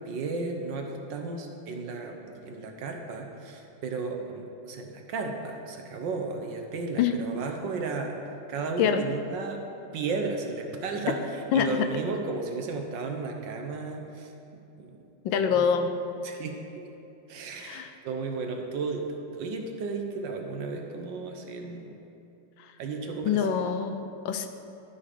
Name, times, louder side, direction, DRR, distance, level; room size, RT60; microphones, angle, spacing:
voice 1, 0.0-8.1 8.5-9.6 9.9-11.2 11.5-14.3 14.8-14.9 15.5-15.7 16.2-16.8 17.3-21.9 22.8-23.6, right 4 dB, 70° right, 3 dB, 1.5 m, -34 dB
voice 2, 11.5-11.9 15.2-15.9 17.6-17.9 22.6-22.7 23.2-24.5, left 7 dB, 75° left, 8 dB, 1.3 m, -25 dB
12.0 x 5.8 x 5.0 m, 2.9 s
omnidirectional pair, 2.2 m